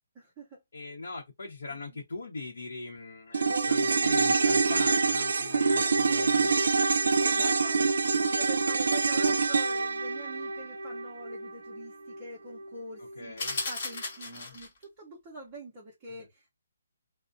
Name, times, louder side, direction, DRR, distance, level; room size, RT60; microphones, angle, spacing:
voice 1, 0.1-0.6 1.7-2.0 3.5-4.1 5.4-6.7 7.2-16.5, right 1 dB, 15° right, 0.6 m, -45 dB
voice 2, 0.7-6.8 7.1-7.4 13.0-13.6 14.2-14.6 16.1-16.3, left 3 dB, 85° left, 0.8 m, -42 dB
sound 1, 3.3-11.8 12.1-12.2, right 4 dB, 75° right, 0.3 m, -26 dB
sound 2, 13.4-14.8, left 3 dB, 40° left, 1.0 m, -35 dB
2.4 x 2.0 x 2.5 m
hypercardioid pair, 175°, 0 cm